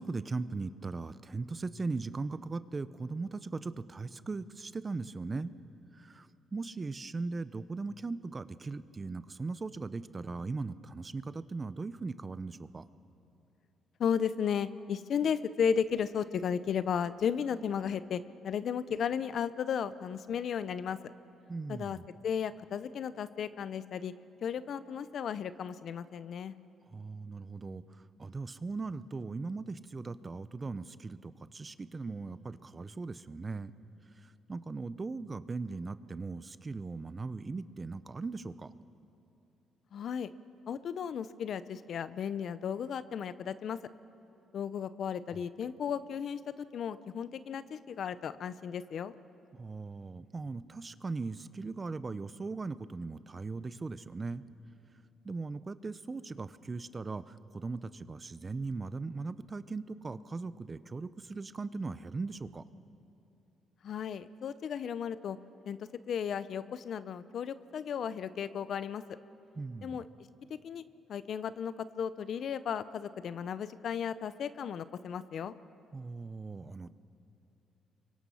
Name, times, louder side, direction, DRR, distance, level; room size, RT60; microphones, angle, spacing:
voice 1, 0.0-5.5 5.9-12.9 21.5-22.1 26.9-27.8 28.2-33.7 34.2-38.7 49.6-54.4 55.2-62.6 69.6-70.0 75.9-76.9, right 3 dB, 30° right, 14 dB, 0.7 m, -39 dB
voice 2, 14.0-21.0 21.7-22.0 22.2-24.1 24.4-26.5 39.9-40.3 40.7-43.8 44.5-49.1 63.8-65.4 65.7-65.8 66.1-69.0 69.8-70.0 70.5-70.8 71.1-75.5, left 7 dB, 60° left, 14 dB, 0.7 m, -34 dB
29.5 x 24.0 x 5.7 m, 2.9 s
cardioid pair, 90°, 0 cm